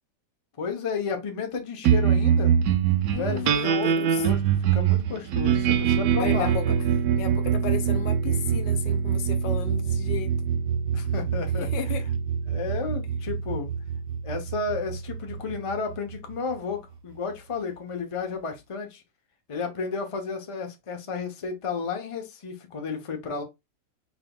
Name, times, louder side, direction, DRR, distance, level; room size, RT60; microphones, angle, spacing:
voice 1, 0.6-2.5 3.1-6.5 10.9-11.7 12.5-13.7 14.2-19.0 19.5-23.4, left 5 dB, 30° left, 0.6 m, -32 dB
sound 1, 1.8-16.5, right 8 dB, 65° right, 1.1 m, -24 dB
voice 2, 3.1-4.2 6.2-6.7 7.2-10.4 11.6-12.0, left 10 dB, 85° left, 1.3 m, -34 dB
4.5 x 3.5 x 2.3 m
omnidirectional pair, 1.9 m